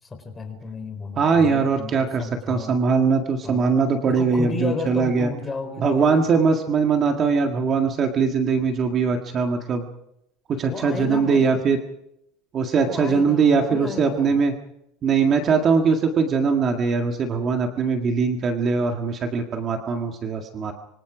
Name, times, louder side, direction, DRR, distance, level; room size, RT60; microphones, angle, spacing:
voice 1, 0.0-2.8 3.4-3.7 4.0-6.2 10.7-11.6 12.8-14.4, left 4 dB, 15° left, 6 dB, 4.2 m, -33 dB
voice 2, 1.2-5.3 5.8-9.8 10.5-11.8 12.5-14.5 15.0-20.7, right 5 dB, 30° right, 4 dB, 1.7 m, -21 dB
26.0 x 24.5 x 5.0 m, 0.82 s
cardioid pair, 160°, 0 cm